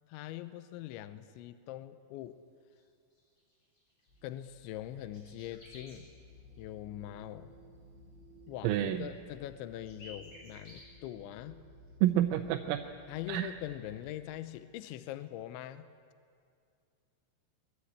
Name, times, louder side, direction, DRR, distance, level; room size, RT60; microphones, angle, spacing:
voice 1, 0.1-2.4 4.2-6.1 6.6-7.5 8.5-11.6 13.1-15.9, left 13 dB, 80° left, 11 dB, 2.9 m, -43 dB
sound 1, 2.7-2.8 3.1-6.0 8.5-8.6 8.9-9.0 9.1-10.8, left 1 dB, 35° left, 7.7 m, -55 dB
sound 2, 4.1-14.2, left 1 dB, 65° left, 9.1 m, -57 dB
voice 2, 8.6-9.1 12.0-12.8 13.3-13.5, right 12 dB, 85° right, 3 dB, 3.5 m, -28 dB
23.0 x 22.5 x 8.6 m, 2.3 s
omnidirectional pair, 5.8 m